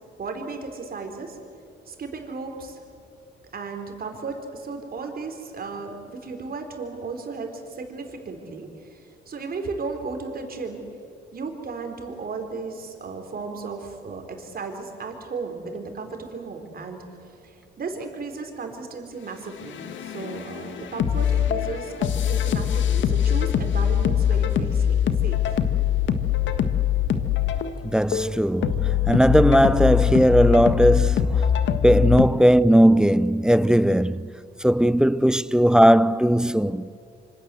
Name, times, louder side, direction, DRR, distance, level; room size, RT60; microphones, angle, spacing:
voice 1, 0.2-1.4 1.9-2.8 3.5-10.8 11.3-17.0 17.4-25.6, right 4 dB, 50° right, 4.5 m, -35 dB
sound 1, 19.6-32.3, left 9 dB, 70° left, 1.6 m, -23 dB
voice 2, 27.8-31.5 31.8-34.3 34.6-36.9, equal, 5° right, 0.6 m, -18 dB
26.5 x 25.0 x 7.9 m
cardioid pair, 90°, 20 cm